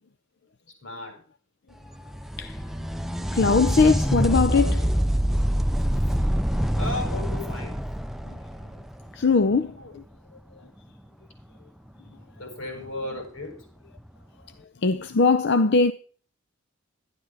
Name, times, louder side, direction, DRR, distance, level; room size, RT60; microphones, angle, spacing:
voice 1, 0.7-1.2 6.8-7.8 9.8-10.0 12.3-13.7, left 2 dB, 85° left, 6.3 m, -35 dB
sound 1, 1.9-9.4 12.8-12.9 14.0-14.1, equal, ahead, 0.5 m, -25 dB
voice 2, 3.3-5.0 8.3-8.4 9.1-10.0 14.8-15.9, left 4 dB, 55° left, 0.6 m, -21 dB
12.5 x 11.0 x 4.8 m
head